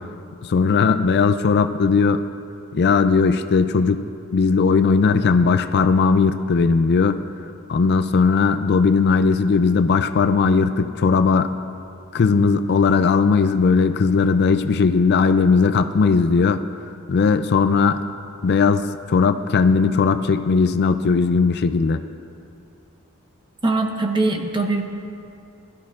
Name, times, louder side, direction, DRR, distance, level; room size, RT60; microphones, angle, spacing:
voice 1, 0.4-2.2 2.7-4.0 4.3-7.2 7.7-11.5 12.1-16.6 17.1-18.0 18.4-22.0, left 5 dB, 50° left, 10 dB, 0.4 m, -18 dB
voice 2, 23.6-24.8, right 2 dB, 20° right, 3 dB, 1.0 m, -21 dB
20.5 x 12.5 x 2.4 m, 2.6 s
head